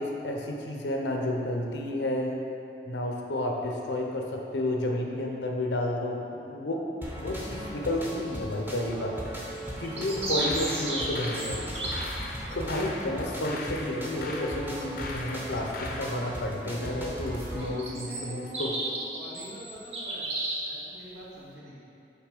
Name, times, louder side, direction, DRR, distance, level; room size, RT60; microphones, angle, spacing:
voice 1, 0.0-2.4 2.9-6.8 7.1-12.0 12.5-18.7, left 1 dB, 85° left, 1 dB, 0.8 m, -31 dB
sound 1, 7.0-17.7, equal, 10° right, 0.7 m, -38 dB
sound 2, 9.5-12.1 17.6-20.7, right 2 dB, 35° right, 0.9 m, -33 dB
sound 3, 10.2-16.1, left 2 dB, 55° left, 0.6 m, -40 dB
voice 2, 17.4-20.3 20.5-21.8, equal, 75° right, -7 dB, 1.3 m, -45 dB
5.8 x 4.1 x 5.1 m, 2.6 s
head